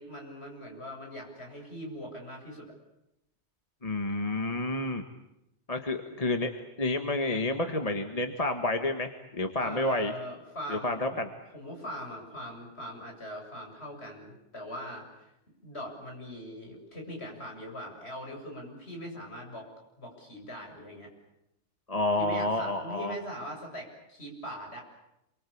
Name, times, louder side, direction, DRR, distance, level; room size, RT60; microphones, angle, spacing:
voice 1, 0.0-2.7 9.6-11.2 11.5-15.3 15.6-19.7 20.0-21.1 22.2-24.8, equal, 60° left, 1 dB, 7.9 m, -41 dB
voice 2, 3.8-5.0 5.7-6.5 6.8-10.1 10.7-11.3 21.9-23.2, left 2 dB, 30° left, 6 dB, 1.7 m, -29 dB
29.0 x 23.5 x 8.7 m, 0.85 s
omnidirectional pair, 1.2 m